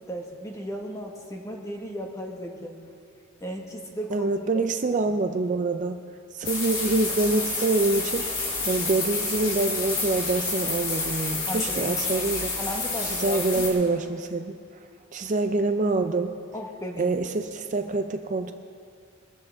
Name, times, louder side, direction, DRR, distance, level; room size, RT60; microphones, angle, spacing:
voice 1, 0.1-2.8 3.4-4.3 11.5-13.7 16.5-17.1, equal, 15° left, 1 dB, 1.5 m, -35 dB
voice 2, 4.1-6.0 6.3-8.3 8.7-12.5 13.2-14.6 15.1-16.4 17.0-18.5, right 3 dB, 40° right, 7 dB, 0.5 m, -25 dB
sound 1, 6.4-13.7, left 3 dB, 75° left, 4.5 m, -29 dB
22.5 x 13.5 x 3.5 m, 2.4 s
head